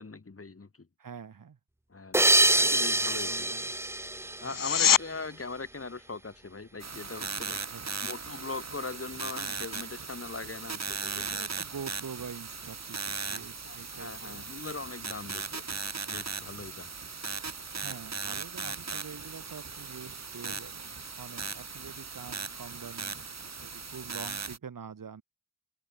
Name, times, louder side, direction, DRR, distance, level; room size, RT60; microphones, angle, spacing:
voice 1, 0.0-0.9 1.9-3.5 4.4-7.6 8.0-11.3 13.2-15.8 16.1-16.9, left 3 dB, 45° left, 3.2 m, -41 dB
voice 2, 1.0-1.6 3.1-3.7 4.4-4.6 7.7-7.8 11.1-14.4 17.7-25.2, right 6 dB, 75° right, 1.9 m, -45 dB
sound 1, 2.1-5.2, right 1 dB, 10° right, 0.6 m, -26 dB
sound 2, 4.4-5.1 16.4-16.5, left 9 dB, 75° left, 0.8 m, -23 dB
sound 3, 6.8-24.6, right 5 dB, 50° right, 2.2 m, -38 dB
open air
cardioid pair, 55°, 33 cm